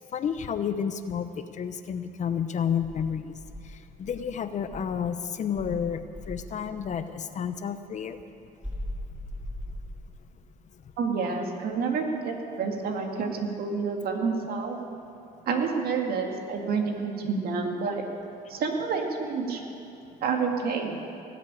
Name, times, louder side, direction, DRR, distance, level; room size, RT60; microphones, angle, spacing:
voice 1, 0.1-1.3 1.6-3.3 4.0-6.0 6.3-8.2, left 7 dB, 45° left, 10 dB, 0.8 m, -30 dB
Insect, 2.8-5.1 5.5-7.0 8.6-10.3, left 1 dB, 5° right, 4.5 m, -39 dB
voice 2, 11.0-14.8 15.5-18.0 18.5-19.6 20.2-21.0, right 5 dB, 65° right, 2 dB, 2.2 m, -29 dB
18.0 x 8.0 x 8.7 m, 2.8 s
cardioid pair, 110°, 17 cm